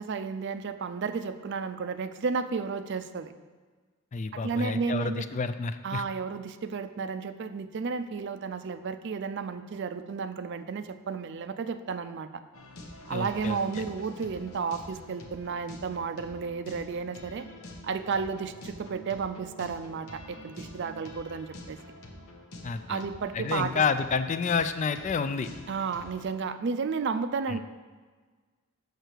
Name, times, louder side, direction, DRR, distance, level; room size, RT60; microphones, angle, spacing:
voice 1, 0.0-3.3 4.3-5.3 5.8-12.4 13.1-17.5 17.8-21.8 22.9-23.8 25.7-27.6, right 5 dB, 55° right, 11 dB, 0.4 m, -32 dB
voice 2, 4.1-6.0 13.1-13.6 22.6-23.0 23.3-25.5 27.5-27.6, left 5 dB, 35° left, 11 dB, 0.3 m, -29 dB
sound 1, 12.5-26.4, left 1 dB, 80° left, 1.1 m, -47 dB
6.7 x 6.6 x 4.5 m, 1.4 s
head